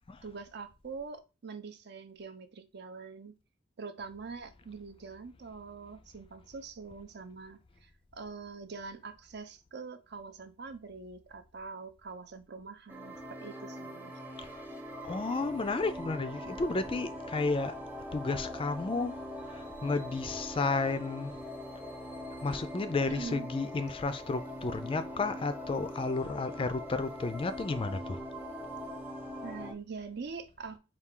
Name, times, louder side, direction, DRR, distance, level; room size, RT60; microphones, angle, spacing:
voice 1, 0.2-3.3 3.8-14.2 23.0-23.5 29.4-30.8, right 4 dB, 60° right, 0.6 m, -44 dB
sound 1, 12.9-29.7, equal, 10° right, 0.7 m, -42 dB
voice 2, 15.0-17.7 18.1-19.1 19.8-21.3 22.4-28.2, left 3 dB, 30° left, 0.4 m, -32 dB
4.5 x 2.4 x 3.6 m
head